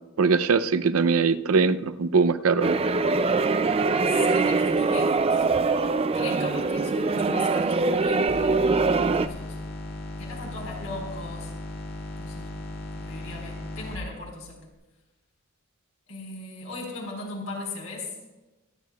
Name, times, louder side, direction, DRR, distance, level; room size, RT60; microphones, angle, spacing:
voice 1, 0.2-2.8 6.3-6.4, right 5 dB, 85° right, 12 dB, 0.5 m, -22 dB
sound 1, 2.6-9.3, right 3 dB, 25° right, 0.4 m, -23 dB
voice 2, 4.1-5.4 6.1-8.3 9.2-9.6 10.2-11.5 12.2-12.6 12.9-14.6 16.1-18.1, left 3 dB, 80° left, -1 dB, 4.2 m, -38 dB
sound 2, 8.3-14.0, left 1 dB, 45° left, 2.0 m, -37 dB
24.5 x 9.3 x 2.3 m, 1.1 s
head